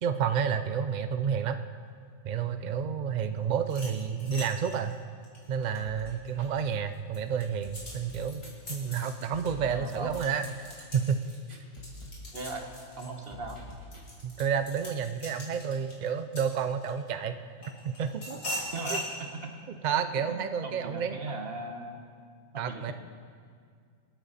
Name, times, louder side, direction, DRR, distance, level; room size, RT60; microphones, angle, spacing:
voice 1, 0.0-1.6 2.2-5.0 5.5-8.4 8.7-10.7 10.9-11.2 14.2-17.4 17.8-18.4 18.9-19.0 19.8-21.2 22.6-22.9, right 7 dB, 70° right, 9 dB, 0.4 m, -30 dB
sound 1, 3.6-6.5 6.9-17.1 17.6-19.1, left 1 dB, 50° left, 3.1 m, -41 dB
sound 2, 5.9-14.1, left 2 dB, 20° left, 2.8 m, -48 dB
voice 2, 9.7-10.4 12.3-12.7 13.0-13.6 18.7-19.5 20.1-22.0 22.5-22.9, right 2 dB, 45° right, 3 dB, 1.5 m, -38 dB
25.5 x 9.1 x 4.2 m, 2.1 s
omnidirectional pair, 1.5 m